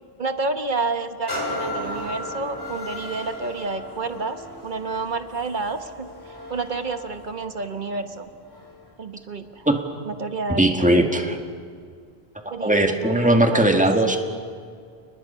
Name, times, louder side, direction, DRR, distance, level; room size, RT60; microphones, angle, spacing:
voice 1, 0.2-6.1 6.5-8.3 9.0-9.7 10.0-11.3 12.5-13.6, right 3 dB, 50° right, 9 dB, 1.3 m, -30 dB
sound 1, 1.3-8.9 9.4-9.6, left 1 dB, 20° left, 4.0 m, -35 dB
voice 2, 10.6-11.4 12.4-14.2, right 1 dB, 5° right, 4 dB, 1.7 m, -19 dB
30.0 x 20.5 x 5.6 m, 2.1 s
omnidirectional pair, 1.0 m